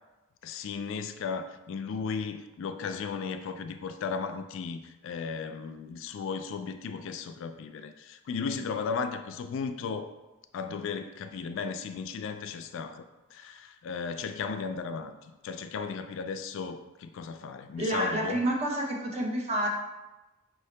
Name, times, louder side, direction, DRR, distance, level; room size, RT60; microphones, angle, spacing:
voice 1, 0.4-10.1 10.5-18.5, left 5 dB, 65° left, 9 dB, 0.3 m, -35 dB
voice 2, 17.8-19.7, right 1 dB, 30° right, 0 dB, 0.8 m, -29 dB
5.8 x 2.7 x 3.2 m, 1.1 s
head